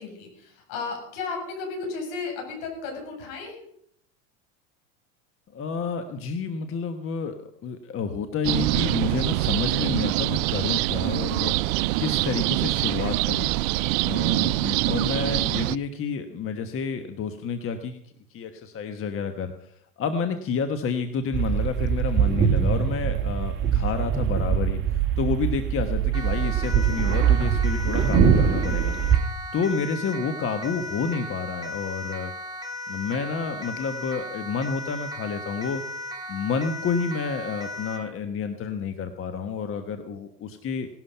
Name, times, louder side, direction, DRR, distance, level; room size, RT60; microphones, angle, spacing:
voice 1, 0.0-3.6, left 4 dB, 65° left, 1 dB, 7.5 m, -34 dB
voice 2, 5.5-11.5 12.0-13.5 14.0-24.8 25.2-28.9 29.5-32.3 32.9-35.8 36.3-40.9, left 5 dB, 35° left, 8 dB, 1.3 m, -29 dB
sound 1, 8.4-15.8, right 19 dB, 75° right, 0.6 m, -24 dB
sound 2, 21.3-29.2, right 8 dB, 30° right, 2.4 m, -23 dB
Siren, 26.1-38.1, left 1 dB, 10° right, 3.1 m, -36 dB
18.5 x 12.0 x 5.7 m, 0.70 s
supercardioid pair, 120°, 40 cm